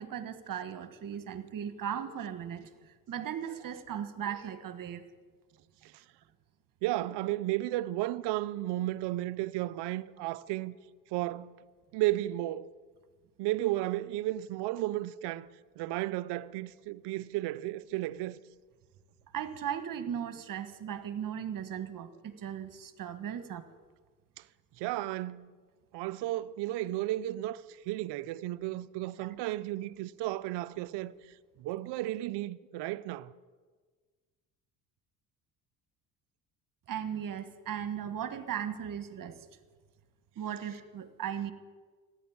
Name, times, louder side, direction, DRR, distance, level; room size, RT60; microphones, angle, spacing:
voice 1, 0.0-2.7 3.1-5.1 19.3-23.6 36.9-39.4 40.4-41.5, right 9 dB, 50° right, 1.6 m, -37 dB
voice 2, 6.8-10.8 11.1-11.6 11.9-12.7 13.4-15.5 15.8-18.4 24.4-24.5 24.8-25.5 25.9-33.3, right 16 dB, 70° right, 0.7 m, -33 dB
14.5 x 10.5 x 8.7 m
supercardioid pair, 65°, 42 cm